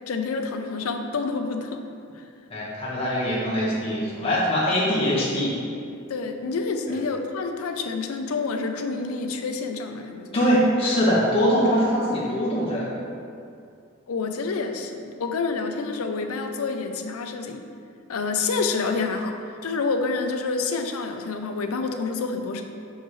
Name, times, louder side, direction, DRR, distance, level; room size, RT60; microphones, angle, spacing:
voice 1, 0.1-1.8 2.1-2.2 6.1-10.3 14.1-17.6 18.1-22.6, left 4 dB, 90° left, 6 dB, 0.5 m, -28 dB
voice 2, 2.5-5.6 6.9-7.0 10.3-12.9, equal, 25° left, -7 dB, 1.3 m, -22 dB
5.9 x 5.3 x 3.1 m, 2.4 s
head